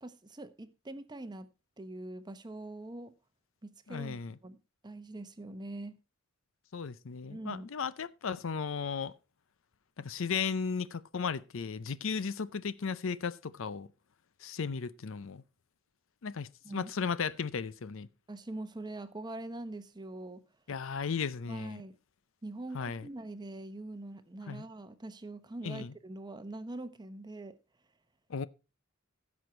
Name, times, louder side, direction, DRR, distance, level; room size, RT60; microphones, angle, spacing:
voice 1, 0.0-1.5 1.8-3.1 3.6-4.6 4.8-6.0 7.3-7.7 16.6-16.9 18.3-20.4 21.5-21.9 22.4-27.6, right 2 dB, 20° right, 0.8 m, -43 dB
voice 2, 3.9-4.4 6.7-9.1 10.0-13.9 14.4-15.4 16.2-18.1 20.7-21.8 22.7-23.1 24.5-24.7 25.6-25.9 28.3-28.5, left 5 dB, 65° left, 0.5 m, -35 dB
15.5 x 6.3 x 4.3 m
head